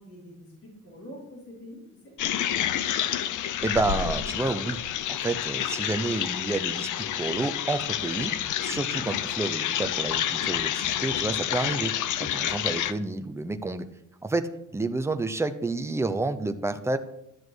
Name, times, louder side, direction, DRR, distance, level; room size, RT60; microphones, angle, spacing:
voice 1, 0.0-2.1 8.7-9.1, equal, 45° left, -5 dB, 4.8 m, -45 dB
sound 1, 2.2-12.9, left 11 dB, 70° left, 0.7 m, -29 dB
voice 2, 3.6-4.8 5.1-11.9 12.2-13.9 14.2-17.0, right 2 dB, 10° right, 9 dB, 0.7 m, -29 dB
13.0 x 7.3 x 6.3 m, 0.83 s
cardioid pair, 155°, 32 cm